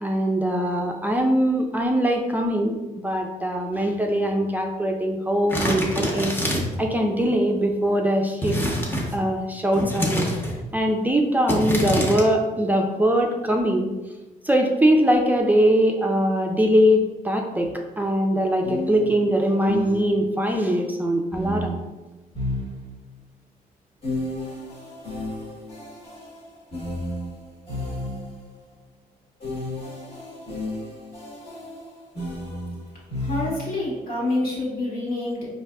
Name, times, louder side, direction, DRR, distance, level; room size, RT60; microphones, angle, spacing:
voice 1, 0.0-8.8 9.1-10.3 10.7-13.9 14.4-17.7 18.0-21.7, equal, 10° right, 1 dB, 0.4 m, -22 dB
sound 1, 5.5-6.8 8.4-9.2 9.7-10.6 11.5-12.2, equal, 15° left, 0.7 m, -25 dB
sound 2, 17.6-17.8 18.6-20.4 21.3-23.2 24.0-28.5 29.4-33.9, left 1 dB, 40° left, 1.0 m, -33 dB
voice 2, 33.2-35.5, left 2 dB, 75° left, -5 dB, 1.4 m, -27 dB
4.6 x 2.6 x 2.3 m, 1.1 s
cardioid pair, 100°, 15 cm